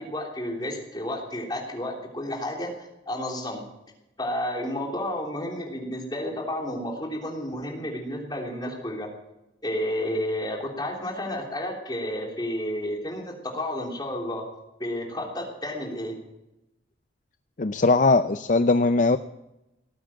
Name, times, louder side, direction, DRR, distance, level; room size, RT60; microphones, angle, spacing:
voice 1, 0.0-2.7 3.0-3.6 4.2-9.1 9.6-14.4 14.8-16.1, left 1 dB, 20° left, 0 dB, 3.4 m, -31 dB
voice 2, 17.6-19.2, left 3 dB, 40° left, 11 dB, 0.5 m, -20 dB
18.0 x 8.9 x 8.9 m, 0.91 s
head